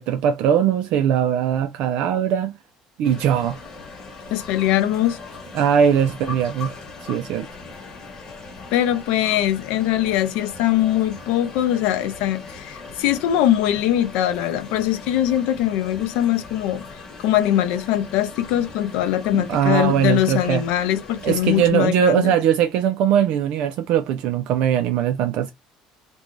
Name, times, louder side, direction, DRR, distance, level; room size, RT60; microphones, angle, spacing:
voice 1, 0.0-2.6 3.0-3.6 5.5-6.7 7.0-7.5 19.3-20.6 21.2-25.5, right 9 dB, 60° right, 0.3 m, -20 dB
sound 1, 3.0-21.7, left 4 dB, 25° left, 1.0 m, -39 dB
voice 2, 4.3-5.2 8.7-16.8 17.2-22.4, left 12 dB, 75° left, 0.5 m, -21 dB
2.6 x 2.2 x 3.0 m
cardioid pair, 160°, 2 cm